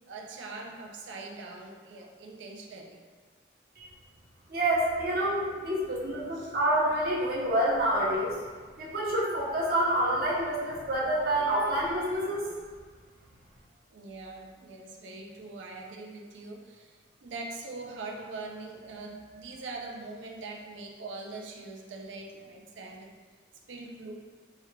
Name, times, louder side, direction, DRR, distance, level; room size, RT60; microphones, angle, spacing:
voice 1, 0.1-3.0 6.0-6.5 10.5-11.0 13.9-23.1 23.7-24.1, right 3 dB, 80° right, 1 dB, 0.4 m, -43 dB
voice 2, 4.5-8.3 8.8-12.5, right 1 dB, 50° right, -5 dB, 0.8 m, -27 dB
3.5 x 2.2 x 3.2 m, 1.5 s
head